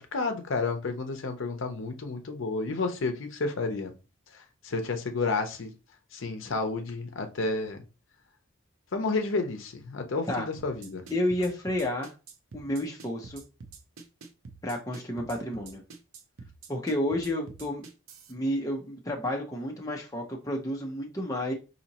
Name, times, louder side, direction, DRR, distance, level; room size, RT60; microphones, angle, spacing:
voice 1, 0.1-3.9 4.3-5.7 6.1-7.8 8.9-11.0, left 3 dB, 75° left, 0.6 m, -31 dB
sound 1, 10.6-18.3, right 4 dB, 85° right, 0.7 m, -46 dB
voice 2, 11.1-12.1 12.5-13.4 14.6-15.8 16.7-17.8 18.3-21.5, left 1 dB, 15° left, 0.6 m, -30 dB
4.1 x 2.8 x 2.9 m
head